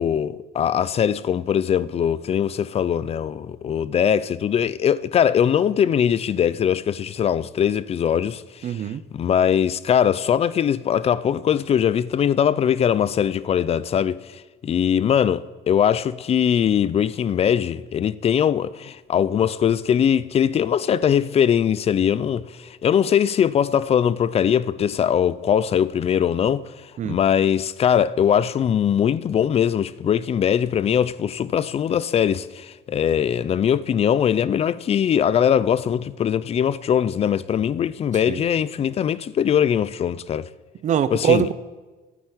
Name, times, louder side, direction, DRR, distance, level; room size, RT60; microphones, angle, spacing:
voice 1, 0.0-8.4 9.1-14.2 14.6-26.7 27.0-40.5 41.1-41.5, left 8 dB, 35° left, 0.5 m, -21 dB
voice 2, 8.6-9.0 27.0-27.2 38.3-38.4 40.8-41.5, right 9 dB, 40° right, 0.7 m, -22 dB
11.5 x 9.9 x 9.0 m
cardioid pair, 145°, 18 cm